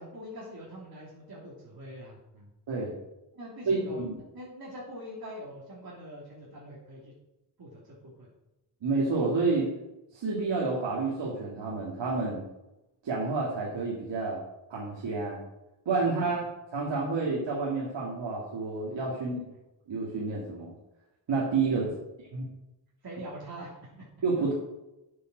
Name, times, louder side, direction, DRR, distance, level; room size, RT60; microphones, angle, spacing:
voice 1, 0.0-2.5 3.3-7.1 7.6-8.3 16.0-16.4 19.1-19.3 21.7-21.9 23.0-24.1, equal, 55° right, -5 dB, 3.2 m, -44 dB
voice 2, 3.7-4.2 8.8-9.7 10.1-12.4 13.0-14.4 14.7-15.4 15.9-16.5 16.7-19.4 19.9-20.7 21.3-21.9 22.3-22.4 24.2-24.5, right 3 dB, 85° right, -4 dB, 2.2 m, -29 dB
8.3 x 7.6 x 6.1 m, 0.94 s
cardioid pair, 60°, 43 cm